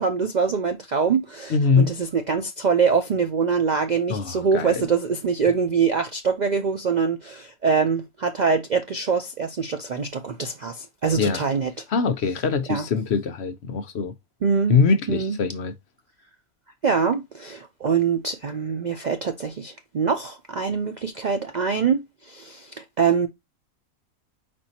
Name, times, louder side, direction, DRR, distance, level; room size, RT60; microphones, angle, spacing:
voice 1, 0.0-11.7 12.7-12.9 14.4-14.8 15.1-15.4 16.8-23.3, right 5 dB, 90° right, 0.4 m, -24 dB
voice 2, 1.5-1.9 4.1-4.8 11.2-11.4 11.9-14.1 14.7-15.7, left 5 dB, 55° left, 0.8 m, -22 dB
4.5 x 4.3 x 2.7 m
omnidirectional pair, 1.5 m